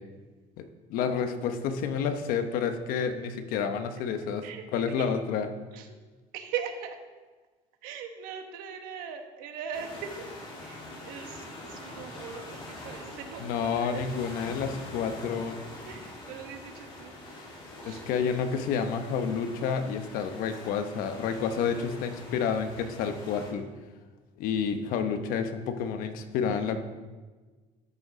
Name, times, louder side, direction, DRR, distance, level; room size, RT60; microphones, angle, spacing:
voice 1, 0.6-4.5 4.7-5.5 13.4-15.6 17.8-23.7 24.4-26.8, left 6 dB, 75° left, 8 dB, 1.0 m, -29 dB
voice 2, 4.4-5.1 5.7-6.0 6.3-7.0 7.8-10.3 10.6-14.0 15.9-17.2 17.8-18.1, right 7 dB, 80° right, 5 dB, 1.4 m, -40 dB
sound 1, 9.7-23.5, left 1 dB, 35° left, 2.7 m, -44 dB
12.5 x 6.7 x 4.8 m, 1.3 s
cardioid pair, 165°, 15 cm